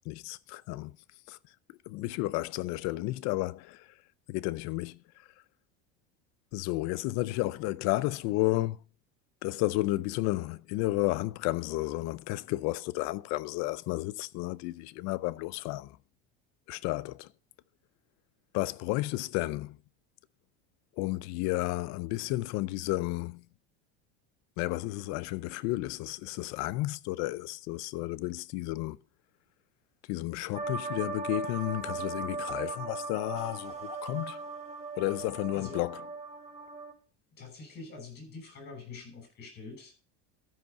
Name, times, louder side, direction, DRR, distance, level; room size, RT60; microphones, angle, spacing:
voice 1, 0.1-1.0 1.3-1.4 1.9-3.9 4.3-5.2 6.5-8.8 9.4-16.0 16.7-17.3 18.5-19.8 21.0-23.5 24.6-29.0 30.1-34.4 35.0-36.1, left 19 dB, 60° left, 0.6 m, -32 dB
sound 1, 30.6-36.9, right 4 dB, 20° right, 1.8 m, -38 dB
voice 2, 37.4-39.9, left 4 dB, 35° left, 6.5 m, -45 dB
13.5 x 5.6 x 5.3 m
cardioid pair, 140°, 31 cm